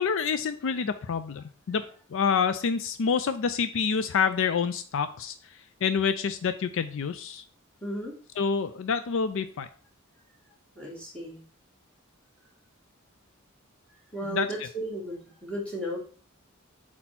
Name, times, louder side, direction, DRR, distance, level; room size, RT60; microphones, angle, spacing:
voice 1, 0.0-1.8 2.1-5.3 5.8-7.4 8.4-9.7 14.2-14.5, left 6 dB, 65° left, 11 dB, 0.4 m, -27 dB
voice 2, 7.8-8.2 10.8-11.4 14.1-16.0, right 1 dB, 5° left, -4 dB, 2.0 m, -34 dB
4.4 x 4.2 x 5.8 m, 0.43 s
head